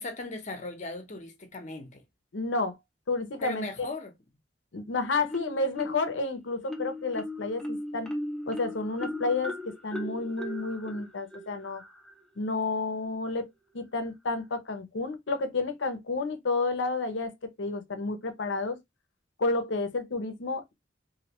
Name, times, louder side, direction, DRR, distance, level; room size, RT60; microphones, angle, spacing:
voice 1, 0.0-2.0 3.4-4.1, left 2 dB, 40° left, 0.8 m, -38 dB
voice 2, 2.3-2.8 3.1-3.9 4.7-8.1 8.5-11.8 12.4-13.5 13.7-17.3 17.6-18.8 19.4-20.7, left 3 dB, 70° left, 0.7 m, -30 dB
Marimba xylophone, 5.3-6.2 6.7-12.2, left 1 dB, 5° left, 0.6 m, -38 dB
3.1 x 2.7 x 2.9 m
head